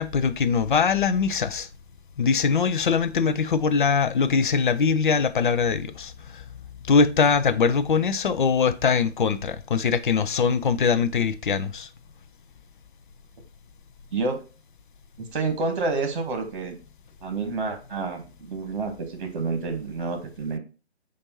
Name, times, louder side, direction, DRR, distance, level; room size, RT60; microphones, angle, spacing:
voice 1, 0.0-1.7 2.2-6.4 6.8-11.9, left 5 dB, 50° left, 0.5 m, -22 dB
voice 2, 15.3-16.8 17.2-20.6, right 3 dB, 50° right, 1.3 m, -29 dB
6.7 x 2.6 x 2.9 m
figure-of-eight pair, 135°, 33 cm